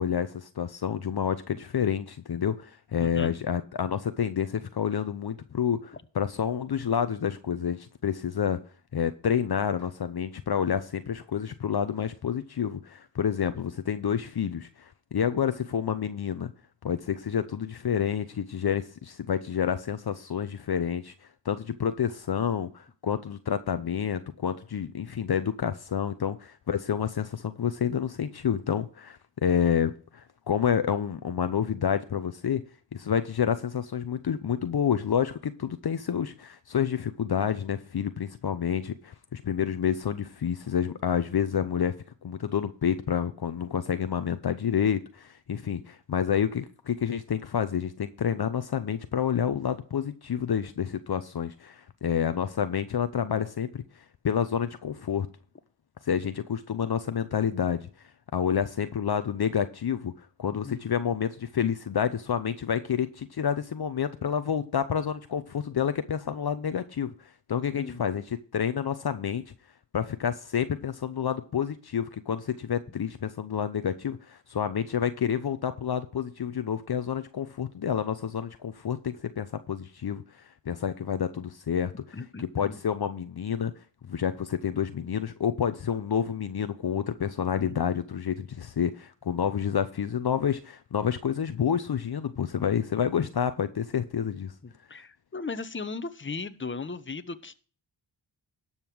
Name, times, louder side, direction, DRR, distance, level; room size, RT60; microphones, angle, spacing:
voice 1, 0.0-8.6 8.9-16.5 16.8-21.1 21.4-32.6 32.9-41.9 42.2-55.3 56.0-57.9 58.3-67.1 67.5-69.4 69.9-80.2 80.7-83.7 84.1-94.5, left 8 dB, 50° left, 0.9 m, -29 dB
voice 2, 3.0-3.3 60.6-60.8 67.8-68.0 82.1-82.8 87.6-87.7 94.6-97.5, left 4 dB, 25° left, 1.1 m, -37 dB
12.0 x 5.6 x 6.2 m
cardioid pair, 45°, 48 cm